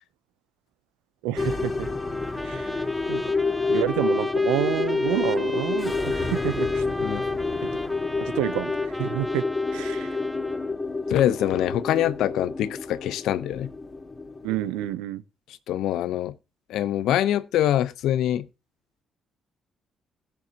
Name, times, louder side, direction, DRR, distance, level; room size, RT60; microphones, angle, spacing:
voice 1, 1.2-1.9 2.4-3.2 3.7-6.8 7.6-7.8 8.2-9.5 9.7-10.2 14.4-15.2, right 15 dB, 85° right, 0.6 m, -29 dB
sound 1, 1.4-14.9, left 3 dB, 30° left, 1.8 m, -28 dB
Trumpet, 1.8-10.7, equal, ahead, 1.0 m, -38 dB
voice 2, 11.1-13.7 15.7-16.3 16.7-18.4, left 12 dB, 75° left, 0.7 m, -24 dB
16.5 x 7.1 x 2.8 m
hypercardioid pair, 50°, 0 cm